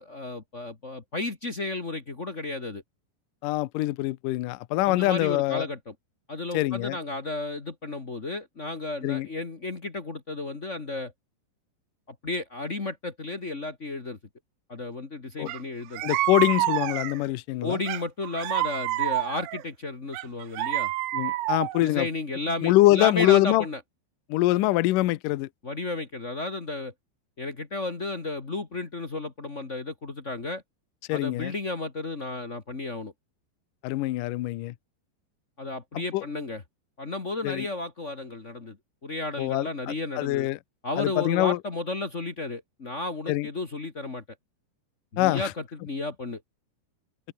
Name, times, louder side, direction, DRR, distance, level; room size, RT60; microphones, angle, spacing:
voice 1, 0.0-2.8 4.8-5.9 6.3-11.1 12.1-14.2 14.7-16.0 17.6-20.9 21.8-23.8 24.5-24.6 25.6-26.9 27.4-30.6 31.1-33.1 35.6-36.6 37.0-38.8 39.0-40.5 40.8-44.2 45.1-46.4, left 2 dB, 65° left, 0.7 m, -33 dB
voice 2, 3.4-5.7 6.5-7.0 9.0-9.3 15.4-15.5 16.0-17.8 21.1-22.1 22.6-23.7 24.3-25.5 31.1-31.5 33.8-34.7 35.9-36.2 37.4-37.7 39.4-40.6 41.0-41.6 43.3-43.5 45.2-45.5, left 17 dB, 85° left, 1.9 m, -24 dB
sound 1, 15.5-15.6 15.9-17.3 17.9-19.6 20.1-21.9, right 16 dB, 75° right, 2.2 m, -28 dB
omnidirectional pair, 5.1 m